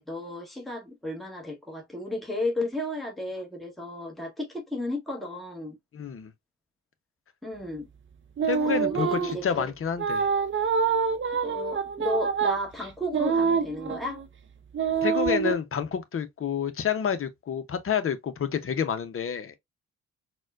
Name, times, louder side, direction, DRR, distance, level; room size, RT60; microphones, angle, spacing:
voice 1, 0.0-5.8 7.4-7.9 8.7-9.7 11.4-14.2, left 1 dB, ahead, 1.2 m, -33 dB
voice 2, 5.9-6.3 8.4-10.3 15.0-19.5, left 7 dB, 40° left, 0.7 m, -29 dB
sound 1, 8.4-9.5 10.0-14.3 14.7-15.5, right 6 dB, 35° right, 0.7 m, -26 dB
4.1 x 2.3 x 2.4 m
hypercardioid pair, 45°, 33 cm